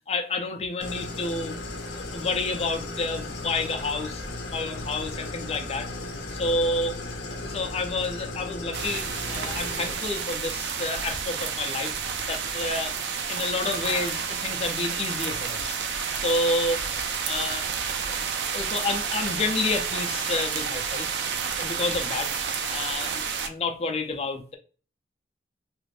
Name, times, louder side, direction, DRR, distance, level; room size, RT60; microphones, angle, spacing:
voice 1, 0.1-1.6 1.9-4.2 4.5-5.9 6.3-7.0 7.4-11.9 12.3-12.9 13.3-15.8 16.2-16.8 17.2-17.7 18.1-18.3 18.5-21.1 21.6-22.3 22.7-24.6, left 3 dB, 35° left, 0.4 m, -29 dB
Idling, 0.8-9.9, left 2 dB, 90° left, 0.6 m, -36 dB
sound 1, 1.6-12.8, equal, 50° right, 1.0 m, -47 dB
sound 2, 8.7-23.5, right 6 dB, 80° right, 0.4 m, -30 dB
2.5 x 2.5 x 3.2 m
head